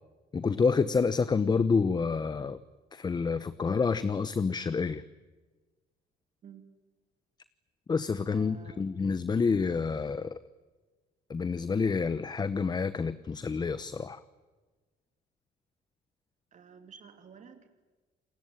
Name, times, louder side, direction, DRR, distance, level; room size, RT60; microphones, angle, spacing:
voice 1, 0.3-2.6 2.9-5.0 7.9-10.4 11.3-14.2, left 5 dB, 25° left, 14 dB, 0.9 m, -28 dB
voice 2, 6.4-6.7 8.3-8.8 16.5-17.7, right 6 dB, 45° right, 7 dB, 2.8 m, -51 dB
29.0 x 20.0 x 9.2 m, 1.3 s
cardioid pair, 110°, 17 cm